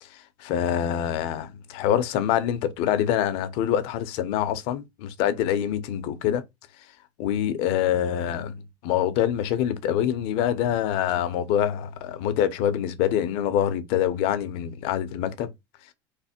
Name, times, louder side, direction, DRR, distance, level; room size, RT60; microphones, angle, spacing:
voice 1, 0.0-6.4 7.2-15.5, left 10 dB, 65° left, 0.7 m, -25 dB
3.3 x 2.1 x 4.3 m
supercardioid pair, 125°, 11 cm